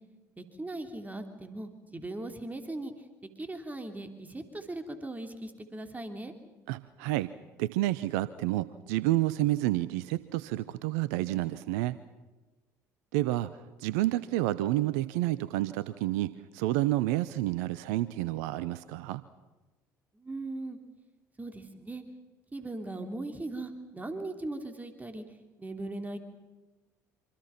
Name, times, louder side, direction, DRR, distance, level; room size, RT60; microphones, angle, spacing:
voice 1, 0.4-3.1 3.4-6.3 20.1-20.8 21.4-22.0 22.5-26.2, right 2 dB, 15° right, 6 dB, 3.2 m, -39 dB
voice 2, 6.7-7.3 7.6-12.0 13.1-13.5 13.8-19.2, right 16 dB, 70° right, 16 dB, 0.7 m, -29 dB
26.5 x 26.0 x 5.9 m, 1.2 s
hypercardioid pair, 55°, 9 cm